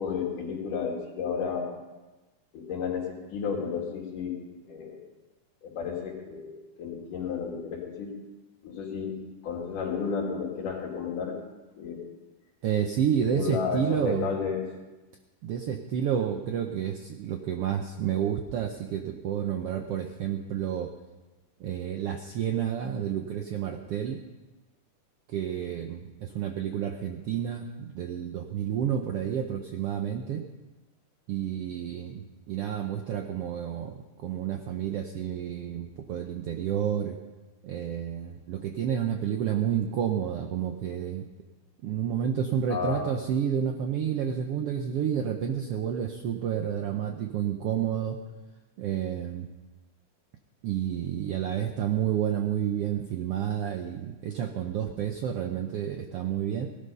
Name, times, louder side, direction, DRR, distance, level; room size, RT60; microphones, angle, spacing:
voice 1, 0.0-1.7 2.5-4.4 4.7-5.0 5.6-8.1 8.6-11.4 11.8-12.1 13.2-14.6 42.7-43.0, left 6 dB, 80° left, -1 dB, 3.9 m, -32 dB
voice 2, 12.6-14.3 15.4-20.9 21.6-24.2 25.3-30.5 31.3-37.2 37.6-41.2 41.8-48.2 48.8-49.5 50.6-56.7, right 9 dB, 75° right, 5 dB, 1.3 m, -30 dB
17.0 x 12.0 x 5.5 m, 1.1 s
omnidirectional pair, 3.6 m